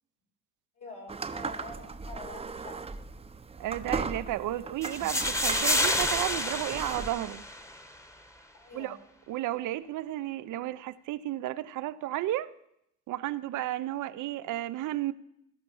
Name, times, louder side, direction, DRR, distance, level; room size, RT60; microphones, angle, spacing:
voice 1, 0.7-2.8 8.5-9.0, left 2 dB, 90° left, 5.4 m, -46 dB
sound 1, 1.1-7.1, right 4 dB, 20° right, 0.7 m, -38 dB
voice 2, 3.6-7.4 8.7-9.0 9.3-12.5 13.1-15.1, right 14 dB, 85° right, 0.6 m, -33 dB
sound 2, 4.8-7.8, left 1 dB, 10° left, 1.1 m, -29 dB
16.5 x 5.9 x 7.1 m
cardioid pair, 90°, 30 cm